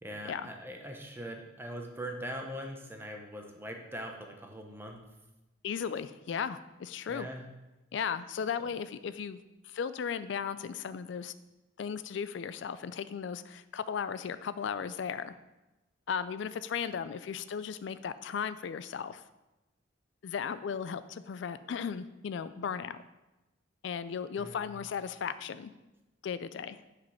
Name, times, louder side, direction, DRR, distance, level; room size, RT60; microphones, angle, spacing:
voice 1, 0.0-5.0 7.1-7.5 24.4-24.7, equal, 10° right, 2 dB, 1.0 m, -41 dB
voice 2, 5.6-7.3 7.9-9.4 9.6-11.3 11.8-15.4 16.1-19.2 20.2-23.0 23.8-25.7 26.2-26.8, left 7 dB, 65° left, 13 dB, 0.3 m, -36 dB
9.1 x 5.1 x 5.7 m, 1.0 s
head